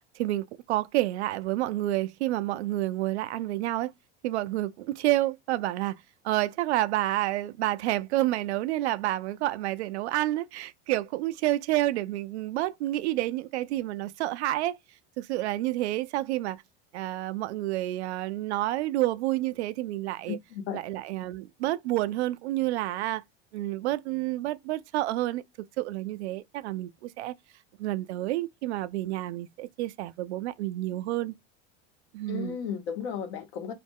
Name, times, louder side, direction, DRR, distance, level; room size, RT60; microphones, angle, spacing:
voice 1, 0.0-3.9 4.2-14.8 15.2-16.6 16.9-20.4 20.7-23.2 23.5-25.4 25.8-27.3 27.8-31.3 32.1-32.6, right 16 dB, 85° right, 0.5 m, -29 dB
voice 2, 20.3-20.8 32.3-33.7, left 7 dB, 75° left, 0.9 m, -34 dB
2.4 x 2.1 x 3.5 m
hypercardioid pair, 100°, 33 cm